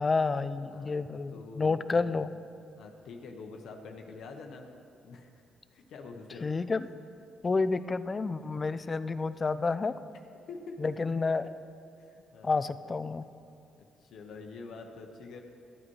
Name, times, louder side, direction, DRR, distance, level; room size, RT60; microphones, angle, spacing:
voice 1, 0.0-2.3 6.4-6.9 7.4-10.0 10.8-11.5 12.4-13.3, left 4 dB, 30° left, 14 dB, 0.3 m, -29 dB
voice 2, 0.7-2.2 2.8-4.7 5.0-5.4 5.7-6.5 10.5-10.8 12.0-12.5 14.0-15.4, left 4 dB, 75° left, 3 dB, 0.8 m, -46 dB
13.0 x 8.5 x 3.1 m, 2.5 s
cardioid pair, 90°, 0 cm